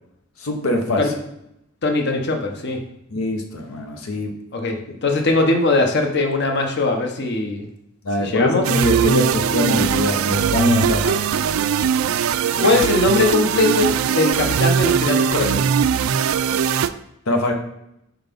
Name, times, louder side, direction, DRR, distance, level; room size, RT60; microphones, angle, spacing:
voice 1, 0.4-1.1 3.1-4.3 8.0-11.2 17.3-17.5, left 1 dB, 85° left, 3 dB, 0.8 m, -22 dB
voice 2, 1.8-2.8 4.5-7.7 8.2-8.7 11.1-11.2 12.6-15.7, left 3 dB, 55° left, 3 dB, 0.9 m, -20 dB
sound 1, 8.6-16.9, right 7 dB, 80° right, 0.3 m, -20 dB
4.6 x 4.0 x 5.2 m, 0.81 s
head